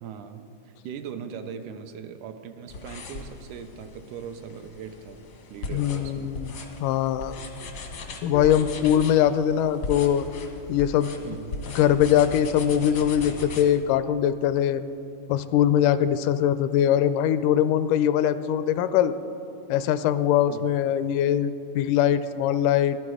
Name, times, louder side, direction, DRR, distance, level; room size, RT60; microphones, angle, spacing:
voice 1, 0.0-6.3 11.2-11.6 20.5-20.7, right 7 dB, 80° right, 8 dB, 2.0 m, -40 dB
sound 1, 2.7-13.6, left 2 dB, 65° left, 1.0 m, -38 dB
voice 2, 5.7-6.5 6.8-7.4 8.2-10.3 10.7-11.1 11.8-14.8 15.3-19.2 19.7-23.0, left 10 dB, 85° left, 13 dB, 2.0 m, -22 dB
14.5 x 12.5 x 4.8 m, 2.7 s
omnidirectional pair, 3.7 m